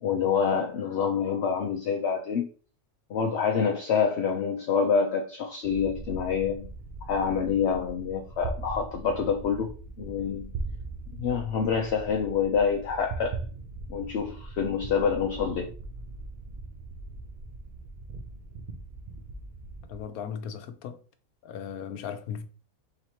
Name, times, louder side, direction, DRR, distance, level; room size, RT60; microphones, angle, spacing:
voice 1, 0.0-2.5 3.1-6.7 7.1-9.7 10.0-10.5 11.2-13.4 13.9-15.7, left 6 dB, 60° left, 0.7 m, -27 dB
sound 1, 5.6-20.0, right 3 dB, 80° right, 0.4 m, -40 dB
voice 2, 19.9-21.0 21.4-22.4, left 7 dB, 80° left, 1.1 m, -37 dB
4.5 x 4.0 x 2.9 m
omnidirectional pair, 1.5 m